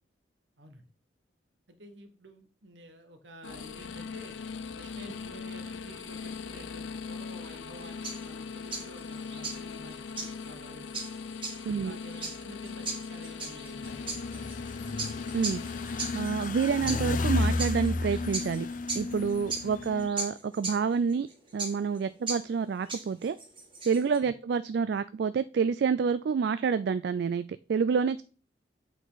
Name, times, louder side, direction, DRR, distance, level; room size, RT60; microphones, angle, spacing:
voice 1, 1.7-4.4 4.7-11.0 11.6-14.7 19.6-19.7, right 1 dB, 75° right, 1.4 m, -50 dB
sound 1, 3.4-16.2, left 5 dB, 90° left, 0.5 m, -40 dB
sound 2, 7.7-24.2, right 3 dB, 30° right, 2.0 m, -39 dB
voice 2, 11.7-12.0 15.3-15.6 16.1-18.7 18.9-21.3 21.5-23.4 23.8-28.2, right 6 dB, 60° right, 0.3 m, -28 dB
sound 3, 13.8-20.1, left 3 dB, 45° left, 0.5 m, -32 dB
8.0 x 4.6 x 4.0 m
head